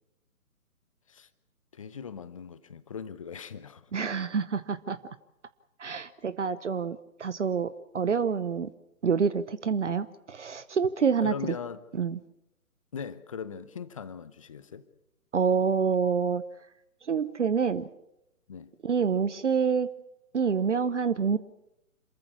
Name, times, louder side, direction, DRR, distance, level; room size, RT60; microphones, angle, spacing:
voice 1, 1.7-3.9 11.2-11.8 12.9-14.9 18.5-18.8, left 6 dB, 25° left, 0.7 m, -40 dB
voice 2, 3.9-5.1 5.8-8.7 9.0-11.3 11.9-12.2 15.3-16.4 17.0-17.9 18.8-19.9 20.3-21.4, right 6 dB, 55° right, 0.9 m, -27 dB
27.0 x 14.5 x 8.4 m
figure-of-eight pair, 135°, 43 cm